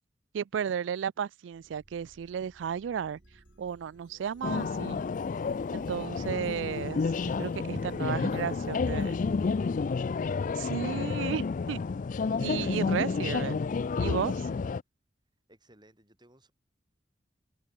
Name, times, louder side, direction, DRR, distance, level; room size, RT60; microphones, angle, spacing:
voice 1, 0.3-3.2 3.6-5.0 5.7-7.0 7.4-9.2 10.5-11.8 12.4-13.6 14.0-14.5, right 7 dB, 85° right, 0.3 m, -33 dB
sound 1, 1.5-13.8, right 1 dB, 40° right, 1.2 m, -60 dB
sound 2, 3.0-12.3, left 3 dB, 80° left, 1.7 m, -62 dB
sound 3, 4.4-14.8, left 4 dB, 45° left, 0.4 m, -30 dB
voice 2, 5.4-7.5 14.0-14.2 15.5-16.5, right 1 dB, 25° right, 7.5 m, -58 dB
head